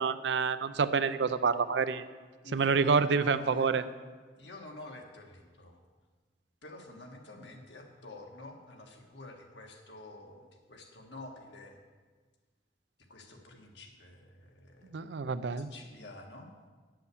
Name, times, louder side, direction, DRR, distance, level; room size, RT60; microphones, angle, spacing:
voice 1, 0.0-2.0 2.5-3.8 14.9-15.7, right 5 dB, 85° right, 13 dB, 0.5 m, -28 dB
voice 2, 2.4-3.7 4.4-5.8 6.6-11.8 13.1-15.1 15.6-16.5, left 2 dB, 80° left, 2 dB, 1.6 m, -49 dB
8.2 x 7.6 x 6.9 m, 1.4 s
head